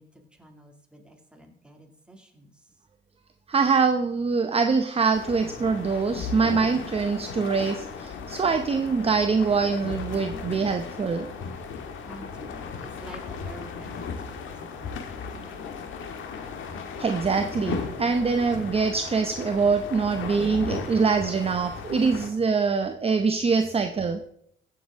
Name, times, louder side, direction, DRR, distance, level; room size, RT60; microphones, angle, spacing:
voice 1, 0.0-2.7 12.1-15.8, right 1 dB, 5° right, 1 dB, 2.5 m, -49 dB
voice 2, 3.5-11.3 17.0-24.2, right 5 dB, 30° right, 6 dB, 0.8 m, -24 dB
sound 1, 5.1-22.3, left 5 dB, 80° left, 1.6 m, -36 dB
16.0 x 7.6 x 3.7 m, 0.66 s
cardioid pair, 90°, 20 cm